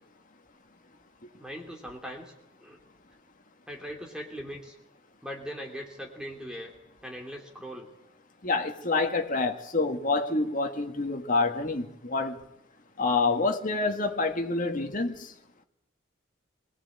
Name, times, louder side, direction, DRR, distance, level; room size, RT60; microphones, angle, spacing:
voice 1, 1.4-2.3 2.6-2.8 3.7-4.7 5.2-6.7 7.0-7.9, equal, 5° right, 2.8 m, -40 dB
voice 2, 8.4-12.4 13.0-15.3, left 3 dB, 40° left, 1.9 m, -27 dB
23.5 x 18.5 x 8.5 m
head